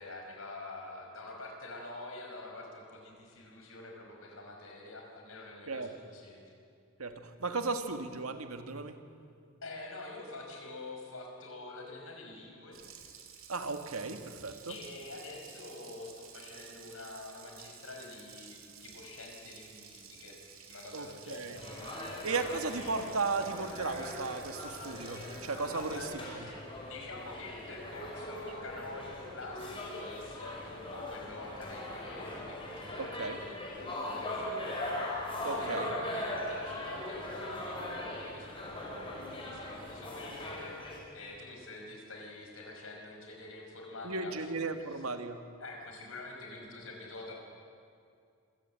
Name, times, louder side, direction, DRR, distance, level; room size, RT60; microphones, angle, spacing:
voice 1, 0.0-6.4 9.6-12.8 14.6-20.4 20.6-21.6 25.7-26.5 26.8-34.9 35.5-44.5 44.8-45.0 45.6-47.3, left 2 dB, 70° left, 1 dB, 5.4 m, -46 dB
voice 2, 7.0-9.0 13.5-14.7 20.9-21.6 22.2-25.9 26.3-26.4 33.0-33.4 35.4-35.9 44.0-45.4, right 3 dB, 85° right, 7 dB, 1.7 m, -35 dB
Water tap faucet, 12.7-26.1, right 7 dB, 65° right, 3.0 m, -53 dB
sound 1, 21.6-41.0, left 1 dB, 25° left, 5.6 m, -40 dB
26.0 x 16.0 x 9.1 m, 2.4 s
head